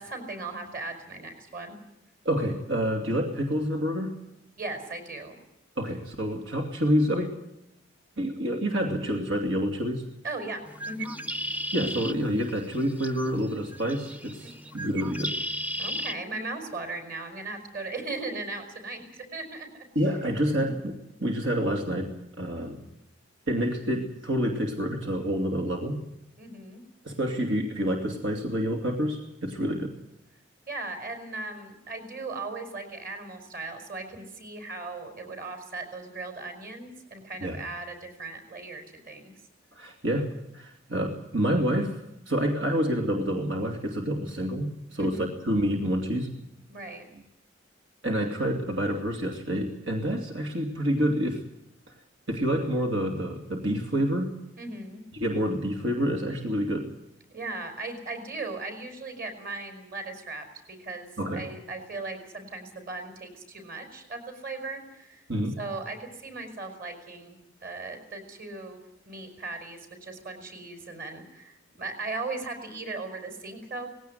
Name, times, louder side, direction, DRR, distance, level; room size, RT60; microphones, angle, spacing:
voice 1, 0.0-1.7 4.6-5.4 10.2-11.1 14.4-14.5 15.8-19.7 22.6-22.9 26.4-26.8 29.6-29.7 30.7-39.3 45.0-45.3 46.7-47.1 54.6-55.0 57.3-65.2 65.6-73.9, right 3 dB, 50° right, 6 dB, 5.1 m, -38 dB
voice 2, 2.2-4.2 5.8-7.3 8.2-10.0 11.7-15.3 19.9-22.8 23.5-26.0 27.0-29.9 37.4-37.6 39.8-42.0 42.3-46.3 48.0-51.4 52.3-54.3 55.1-56.9 61.2-61.5 65.3-65.6, equal, 80° right, 2 dB, 2.9 m, -28 dB
Bird, 10.7-16.2, equal, 10° right, 0.7 m, -35 dB
19.5 x 17.0 x 9.6 m, 0.82 s
head